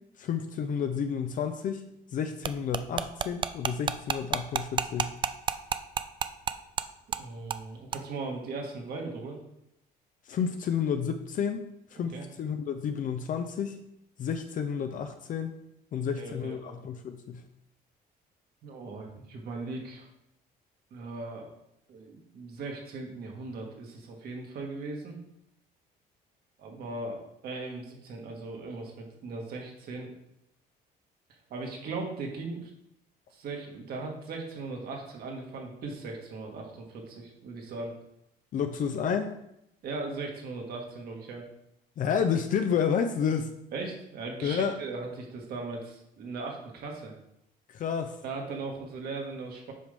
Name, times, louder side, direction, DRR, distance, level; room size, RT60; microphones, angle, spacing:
voice 1, 0.2-1.8 2.1-5.1 10.3-11.6 11.9-12.1 12.4-13.8 14.2-15.5 15.9-17.4 38.5-39.4 42.0-43.5 44.4-44.8 47.7-48.2, left 7 dB, 50° left, 7 dB, 0.6 m, -30 dB
sound 1, 2.4-6.8 7.1-7.2 7.5-7.6 7.9-8.0, right 7 dB, 30° right, 0.3 m, -29 dB
voice 2, 7.2-9.4 12.0-12.2 15.9-16.8 18.6-20.1 20.9-21.5 21.9-25.2 26.6-30.1 31.5-32.7 33.3-37.9 39.8-41.5 43.7-47.1 48.2-49.7, right 3 dB, 65° right, 1 dB, 1.8 m, -38 dB
7.7 x 5.2 x 3.4 m, 0.80 s
cardioid pair, 110°, 17 cm